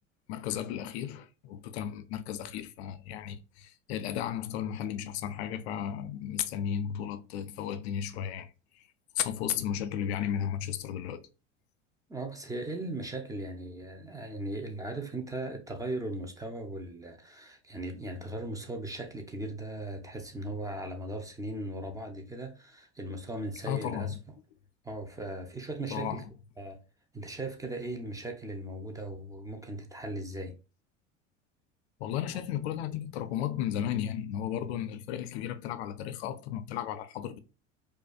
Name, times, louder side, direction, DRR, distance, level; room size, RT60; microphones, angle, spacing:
voice 1, 0.3-8.9 9.2-11.3 23.7-24.2 25.9-26.3 32.0-37.4, left 10 dB, 60° left, 0.5 m, -34 dB
voice 2, 12.1-24.1 24.8-26.2 26.6-26.8 27.1-30.5, right 1 dB, 10° right, 0.6 m, -38 dB
4.8 x 2.5 x 2.3 m
figure-of-eight pair, 70°, 37 cm